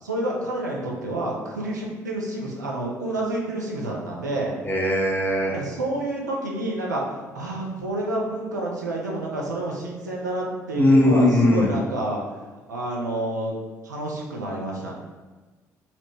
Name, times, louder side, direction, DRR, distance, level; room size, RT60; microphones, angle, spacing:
voice 1, 0.0-4.5 5.5-12.2 12.7-13.5 13.8-14.9, right 1 dB, 90° right, -2 dB, 0.4 m, -29 dB
voice 2, 4.6-5.6 10.8-11.8, left 1 dB, 20° left, -1 dB, 0.5 m, -19 dB
2.8 x 2.0 x 3.1 m, 1.3 s
figure-of-eight pair, 50°, 9 cm